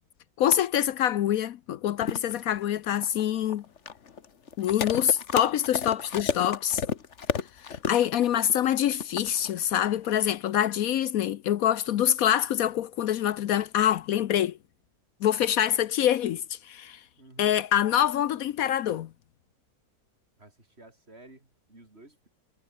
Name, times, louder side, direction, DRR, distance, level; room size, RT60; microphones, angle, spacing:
voice 1, 0.4-3.6 4.6-6.8 7.6-14.6 15.2-17.0 17.4-19.1, left 11 dB, 70° left, 1.1 m, -25 dB
sound 1, 2.0-10.3, left 6 dB, 50° left, 1.6 m, -33 dB
voice 2, 17.2-17.6 20.4-22.3, right 2 dB, 40° right, 5.0 m, -53 dB
omnidirectional pair, 1.6 m